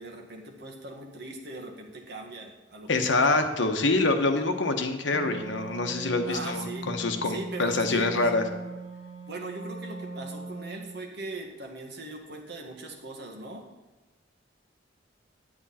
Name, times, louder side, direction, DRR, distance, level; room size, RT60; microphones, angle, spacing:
voice 1, 0.0-3.5 6.2-6.9 7.2-8.3 9.3-13.6, right 2 dB, 60° right, 1 dB, 1.8 m, -40 dB
voice 2, 2.9-8.4, left 3 dB, 75° left, 6 dB, 1.1 m, -25 dB
Wind instrument woodwind instrument, 5.1-11.0, right 3 dB, 35° left, 1.7 m, -39 dB
10.0 x 8.7 x 4.3 m, 1.2 s
head